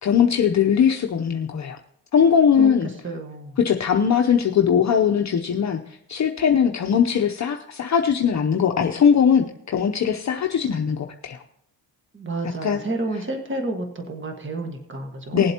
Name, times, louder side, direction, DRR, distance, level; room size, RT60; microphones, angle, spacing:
voice 1, 0.0-1.8 2.1-2.9 3.6-5.8 6.1-11.4 12.6-12.8 15.3-15.5, left 7 dB, 45° left, 3 dB, 0.7 m, -20 dB
voice 2, 2.6-3.6 12.1-15.5, right 2 dB, 30° right, 4 dB, 1.6 m, -30 dB
19.5 x 7.7 x 2.9 m, 0.74 s
cardioid pair, 90°, 41 cm